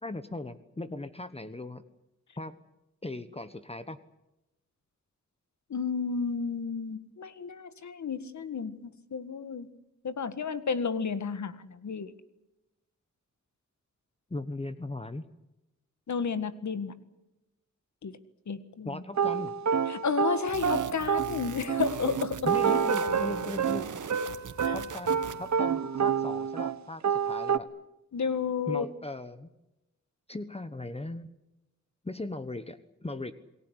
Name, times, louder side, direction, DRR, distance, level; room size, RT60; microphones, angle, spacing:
voice 1, 0.0-1.8 2.4-2.5 3.0-4.0 14.3-15.2 18.8-19.6 22.5-23.9 24.7-27.7 28.7-29.5 30.3-31.3 32.0-33.3, left 2 dB, 20° left, 11 dB, 1.2 m, -38 dB
voice 2, 5.7-9.7 10.0-12.1 16.1-16.9 18.0-18.2 18.5-19.0 19.9-22.4 22.6-22.8 24.6-24.8 28.1-28.9, left 5 dB, 65° left, 12 dB, 1.7 m, -32 dB
sound 1, 19.2-26.8 27.0-27.6, right 7 dB, 65° right, 1.3 m, -28 dB
sound 2, 20.5-25.5, right 6 dB, 80° right, 2.1 m, -41 dB
28.0 x 19.5 x 8.1 m, 0.95 s
wide cardioid pair, 90°, 30 cm